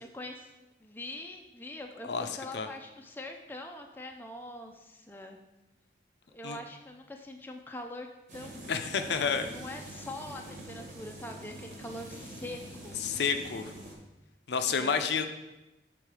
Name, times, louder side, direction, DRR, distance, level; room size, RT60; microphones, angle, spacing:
voice 1, 0.1-0.5 0.8-5.4 6.3-8.1 8.3-8.6 9.4-13.0 14.6-15.0, left 1 dB, 10° left, 3 dB, 0.4 m, -43 dB
sound 1, 8.3-13.9, right 1 dB, 45° right, 1.4 m, -45 dB
voice 2, 8.7-9.5 13.0-13.7 14.5-15.3, left 6 dB, 75° left, 7 dB, 0.5 m, -29 dB
6.4 x 3.8 x 4.7 m, 1.0 s
head